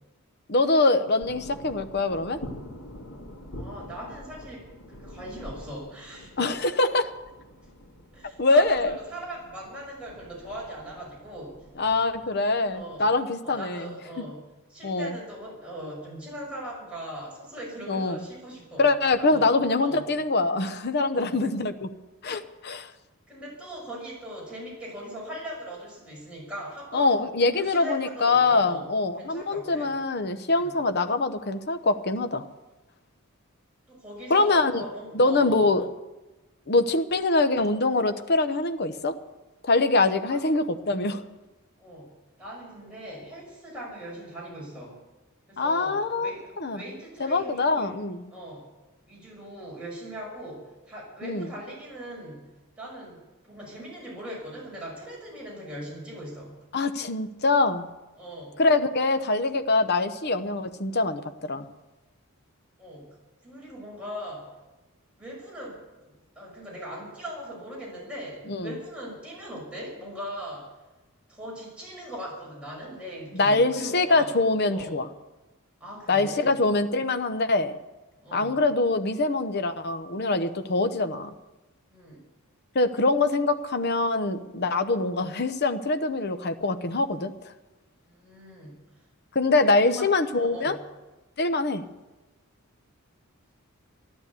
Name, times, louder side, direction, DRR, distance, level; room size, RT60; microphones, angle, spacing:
voice 1, 0.5-2.4 6.4-7.1 8.4-9.0 11.8-13.9 14.2-14.3 14.8-15.1 17.9-18.2 18.8-21.9 22.2-22.9 26.9-32.4 34.3-34.8 35.1-35.9 36.7-39.1 39.7-41.2 45.6-46.8 47.2-48.3 51.2-51.5 56.7-57.9 58.6-61.7 68.5-68.7 73.3-75.1 76.1-77.7 78.3-81.3 82.7-87.3 89.3-90.8 91.4-91.8, left 3 dB, 45° left, 8 dB, 0.8 m, -24 dB
sound 1, 1.2-13.2, equal, 90° left, 2.5 m, -46 dB
voice 2, 3.5-6.5 8.1-11.6 12.7-13.1 13.4-14.4 14.7-18.9 19.2-19.5 19.8-20.0 21.1-21.4 23.3-28.8 29.2-29.9 30.5-30.7 33.9-35.7 40.2-40.5 41.8-42.1 42.4-45.0 45.5-47.9 48.3-48.7 49.1-52.5 52.8-56.5 58.2-58.6 62.8-63.1 63.4-64.5 65.2-70.7 71.3-74.3 74.7-75.0 75.8-76.6 78.2-78.6 81.9-82.2 88.1-88.8 89.5-90.1 90.3-90.8, equal, 5° right, -5 dB, 6.0 m, -40 dB
13.5 x 11.5 x 8.3 m, 1.1 s
head